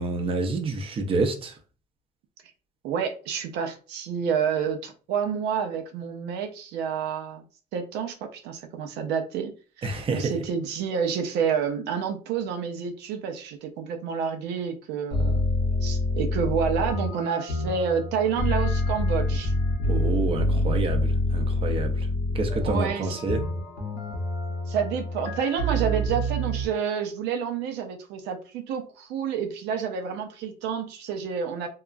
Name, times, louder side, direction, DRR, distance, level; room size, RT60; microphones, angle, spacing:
voice 1, 0.0-1.6 9.8-10.3 19.9-22.1 22.3-23.4, right 3 dB, 35° right, 0.6 m, -28 dB
voice 2, 2.8-7.4 7.7-9.5 9.8-15.5 15.8-19.5 22.6-23.2 24.7-31.7, right 7 dB, 90° right, 0.5 m, -29 dB
sound 1, 15.1-26.7, left 1 dB, 85° left, 1.2 m, -27 dB
2.8 x 2.3 x 2.4 m
cardioid pair, 110°, 17 cm